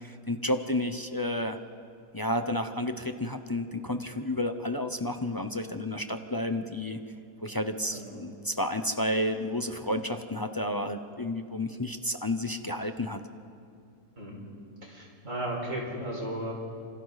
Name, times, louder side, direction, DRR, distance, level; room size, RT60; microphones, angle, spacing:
voice 1, 0.0-1.6 2.1-7.0 7.4-13.2, left 1 dB, 25° left, 7 dB, 0.4 m, -31 dB
voice 2, 7.9-8.2 14.2-14.5 14.8-16.5, right 1 dB, 50° right, -2 dB, 5.5 m, -35 dB
29.0 x 26.5 x 4.1 m, 2.5 s
omnidirectional pair, 1.7 m